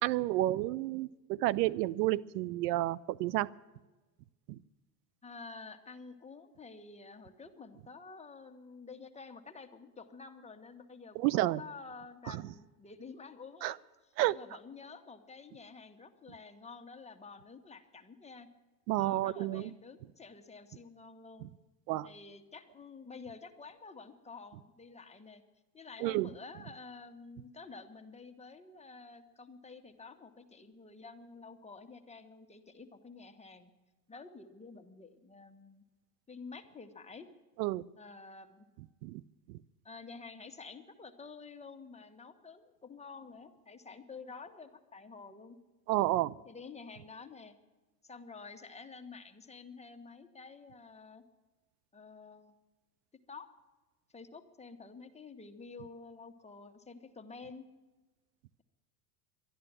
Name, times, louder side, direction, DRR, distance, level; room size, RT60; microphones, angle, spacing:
voice 1, 0.0-3.5 4.5-4.6 11.2-11.6 13.6-13.7 14.2-14.4 18.9-19.7 21.9-22.1 26.0-26.3 37.6-37.8 39.0-39.2 45.9-46.3, right 16 dB, 75° right, 20 dB, 0.6 m, -30 dB
voice 2, 5.2-13.8 14.3-18.5 18.9-21.5 22.0-25.4 25.7-33.7 34.1-35.8 36.3-37.3 38.0-38.7 39.8-45.6 46.4-47.5 48.0-51.2 51.9-52.6 53.3-53.5 54.1-57.7, left 4 dB, 15° left, 4 dB, 1.3 m, -50 dB
12.0 x 11.0 x 8.9 m, 1.2 s
hypercardioid pair, 95°, 48 cm